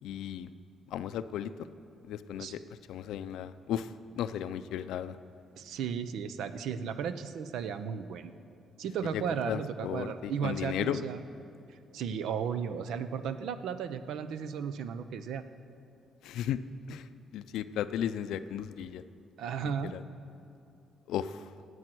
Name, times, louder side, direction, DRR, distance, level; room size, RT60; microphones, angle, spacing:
voice 1, 0.0-0.5 0.9-1.5 2.1-2.6 2.9-5.2 9.1-11.0 16.2-16.6 16.9-17.1 17.3-19.0 19.6-20.0 21.1-21.4, left 10 dB, 85° left, 13 dB, 0.5 m, -35 dB
voice 2, 5.6-8.3 8.8-11.2 11.7-15.4 19.4-19.9, right 7 dB, 80° right, 11 dB, 0.7 m, -35 dB
18.0 x 7.9 x 6.1 m, 2.6 s
cardioid pair, 90°, 0 cm